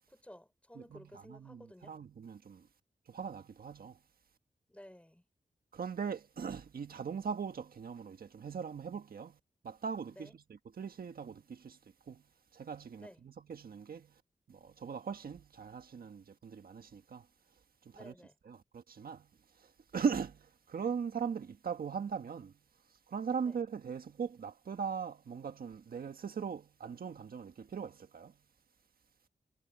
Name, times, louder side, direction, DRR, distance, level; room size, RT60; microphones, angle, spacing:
voice 1, 0.1-2.0 4.7-5.2 10.2-10.3 13.0-13.2 17.9-18.3 23.4-23.6, left 1 dB, 10° left, 4.5 m, -54 dB
voice 2, 0.7-2.7 3.1-4.0 5.7-12.3 12.5-14.2 14.5-18.1 18.4-22.6 22.9-28.4, right 6 dB, 75° right, 1.5 m, -40 dB
wide cardioid pair, 90°, 15 cm